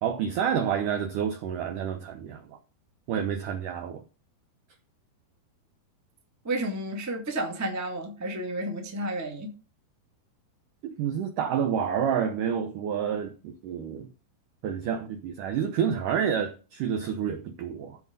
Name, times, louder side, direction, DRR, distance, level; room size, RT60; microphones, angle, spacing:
voice 1, 0.0-2.6 3.1-4.0 10.8-14.1 14.6-18.0, right 8 dB, 80° right, 1.8 m, -29 dB
voice 2, 6.4-9.5, right 1 dB, 25° right, 0.3 m, -31 dB
14.5 x 5.0 x 5.3 m
omnidirectional pair, 4.9 m